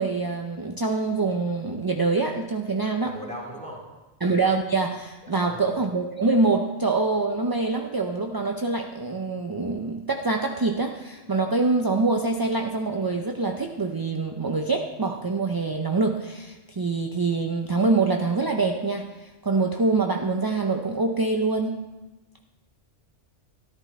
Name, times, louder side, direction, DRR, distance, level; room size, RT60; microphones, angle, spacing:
voice 1, 0.0-3.2 4.2-21.9, right 3 dB, 30° right, 3 dB, 0.4 m, -25 dB
voice 2, 3.0-3.8 5.2-5.6, equal, 5° left, -2 dB, 2.4 m, -38 dB
13.5 x 11.5 x 4.2 m, 1.1 s
omnidirectional pair, 1.2 m